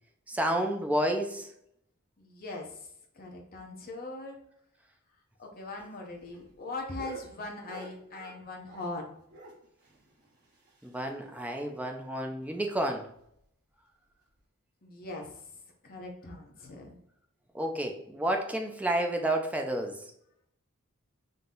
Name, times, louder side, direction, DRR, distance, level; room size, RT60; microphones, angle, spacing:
voice 1, 0.3-1.5 10.8-13.1 17.5-20.1, right 1 dB, 5° right, 3 dB, 0.5 m, -30 dB
voice 2, 2.2-2.9 3.1-4.4 5.4-9.2 14.8-15.5 15.8-17.0, left 2 dB, 45° left, 0 dB, 0.9 m, -41 dB
sound 1, 5.6-9.0 9.3-11.3 11.6-11.7 12.0-12.1 12.4-12.6 13.1-13.4 14.3-14.4, right 2 dB, 45° right, 1.4 m, -50 dB
3.9 x 2.8 x 3.8 m, 0.72 s
head